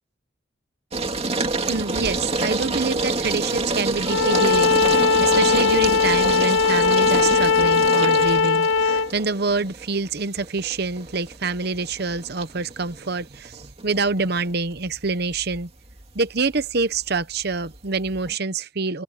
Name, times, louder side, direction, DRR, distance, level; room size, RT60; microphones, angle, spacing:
sound 1, 0.9-18.4, right 3 dB, 30° right, 2.1 m, -28 dB
voice 1, 1.7-15.7 16.1-19.0, right 4 dB, 50° right, 1.0 m, -26 dB
Bowed string instrument, 4.1-9.1, left 4 dB, 70° left, 0.6 m, -19 dB
head